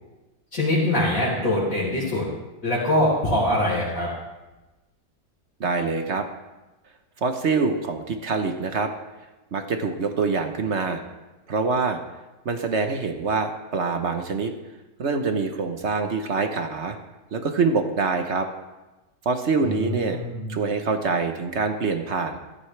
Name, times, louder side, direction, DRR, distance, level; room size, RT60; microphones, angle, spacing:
voice 1, 0.5-2.2 2.6-4.1 19.6-20.6, left 1 dB, 50° left, -8 dB, 4.5 m, -23 dB
voice 2, 5.6-6.3 7.2-8.9 9.5-11.0 11.5-12.0 12.4-14.5 15.0-17.0 17.3-18.5 19.2-20.2 20.5-22.4, right 4 dB, 45° right, 6 dB, 1.1 m, -25 dB
16.5 x 13.0 x 3.3 m, 1.1 s
omnidirectional pair, 1.9 m